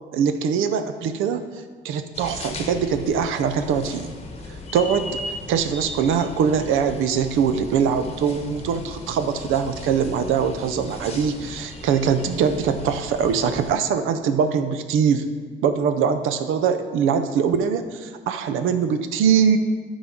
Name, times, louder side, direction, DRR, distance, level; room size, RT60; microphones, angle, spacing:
voice 1, 0.1-1.4 1.8-4.1 4.7-5.2 5.5-15.3 15.6-19.6, right 7 dB, 90° right, 9 dB, 0.6 m, -22 dB
sound 1, 2.1-13.7, left 2 dB, 30° left, 1.0 m, -37 dB
9.5 x 4.0 x 6.0 m, 1.5 s
cardioid pair, 90°, 20 cm